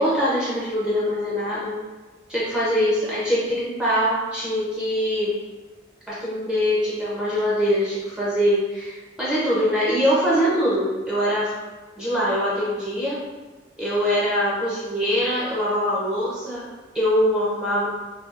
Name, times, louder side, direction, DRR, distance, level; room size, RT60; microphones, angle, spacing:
voice 1, 0.0-1.7 2.3-5.4 6.1-11.5 12.0-13.2 13.8-16.7 16.9-17.9, equal, 5° right, -9 dB, 0.4 m, -23 dB
2.6 x 2.2 x 2.3 m, 1.3 s
head